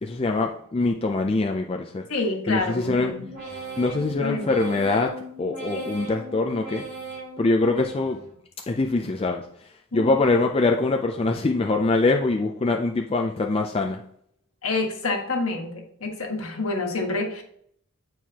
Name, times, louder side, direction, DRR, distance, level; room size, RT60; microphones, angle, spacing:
voice 1, 0.0-2.0 2.5-3.1 3.8-5.1 5.4-6.8 7.4-8.2 8.7-9.4 9.9-14.0, left 3 dB, 25° left, 2 dB, 0.4 m, -23 dB
voice 2, 2.1-3.3 3.9-4.6 5.7-5.9 9.9-10.2 14.6-17.4, left 3 dB, 65° left, 2 dB, 1.5 m, -28 dB
sound 1, 2.6-8.4 8.8-9.5 9.9-10.6 11.0-11.6 12.1-12.7 13.2-13.7, right 2 dB, 45° right, 2.8 m, -40 dB
8.9 x 4.6 x 2.9 m, 0.67 s
head